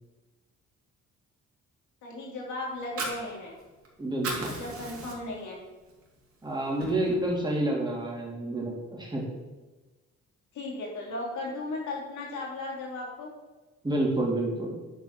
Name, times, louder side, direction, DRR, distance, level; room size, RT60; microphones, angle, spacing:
voice 1, 2.0-3.5 4.4-5.6 10.5-13.3, left 2 dB, 75° left, -3 dB, 3.3 m, -36 dB
Fire, 2.7-3.9 4.1-5.5 5.9-6.0 6.4-7.4, right 2 dB, 50° right, 2.8 m, -36 dB
voice 2, 4.0-4.5 6.4-9.2 13.8-14.8, right 1 dB, 15° right, -2 dB, 3.0 m, -29 dB
9.7 x 4.6 x 6.1 m, 1.2 s
cardioid pair, 90°, 30 cm